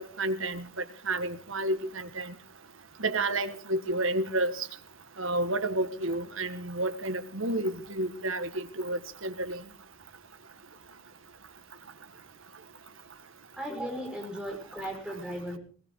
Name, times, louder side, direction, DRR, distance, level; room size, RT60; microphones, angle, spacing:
voice 1, 0.0-2.3 3.0-4.7 5.2-9.6, right 2 dB, 70° right, 1.6 m, -31 dB
voice 2, 13.6-15.6, equal, 5° right, 5.3 m, -36 dB
20.5 x 17.5 x 3.8 m
head